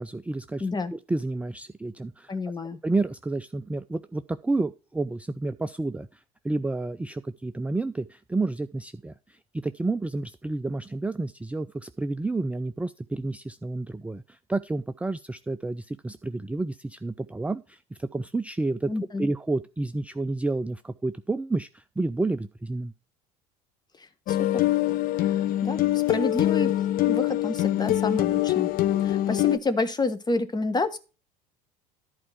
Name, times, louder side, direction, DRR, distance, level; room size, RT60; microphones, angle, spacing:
voice 1, 0.0-2.3 2.8-18.9 19.2-22.9, right 2 dB, 5° right, 11 dB, 0.4 m, -30 dB
voice 2, 0.6-0.9 2.3-2.8 18.9-19.3 24.0-24.7 25.2-26.7 27.1-28.7 29.0-31.0, left 3 dB, 20° left, 10 dB, 1.3 m, -29 dB
sound 1, 24.3-29.6, left 14 dB, 50° left, 0.6 m, -24 dB
11.0 x 4.7 x 5.8 m, 0.32 s
hypercardioid pair, 75°, 19 cm